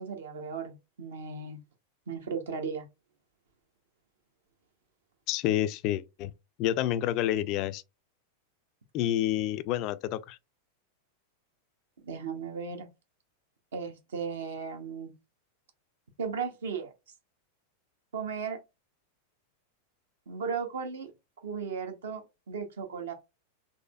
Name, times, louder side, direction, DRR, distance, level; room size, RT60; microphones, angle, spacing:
voice 1, 0.0-1.6 2.1-2.9 12.0-12.9 13.7-15.1 16.2-16.9 18.1-18.6 20.3-21.1 21.4-23.1, right 6 dB, 65° right, 0.9 m, -36 dB
voice 2, 5.3-6.3 6.6-7.8 8.9-10.4, left 12 dB, 40° left, 0.3 m, -28 dB
4.1 x 3.1 x 2.3 m
figure-of-eight pair, 90°, 0 cm